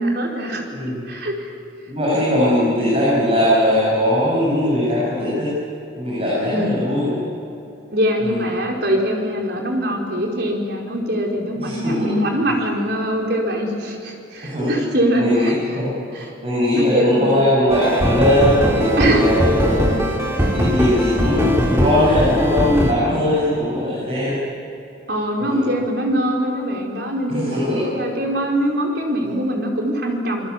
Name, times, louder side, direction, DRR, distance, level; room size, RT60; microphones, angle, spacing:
voice 1, 0.0-0.7 1.1-1.5 6.5-6.8 7.9-15.8 16.1-16.3 16.7-17.4 19.0-19.3 20.3-20.5 25.1-30.5, right 1 dB, 55° right, 0 dB, 4.8 m, -22 dB
voice 2, 0.7-1.1 1.9-5.5 6.0-7.2 8.2-8.4 11.6-12.1 14.4-14.7 15.2-15.9 16.4-20.0 20.5-24.4 25.4-25.6 27.3-27.8, left 1 dB, 30° right, -8 dB, 7.8 m, -19 dB
sound 1, 17.7-22.9, equal, 15° right, 3.0 m, -20 dB
27.0 x 21.5 x 8.6 m, 2.8 s
head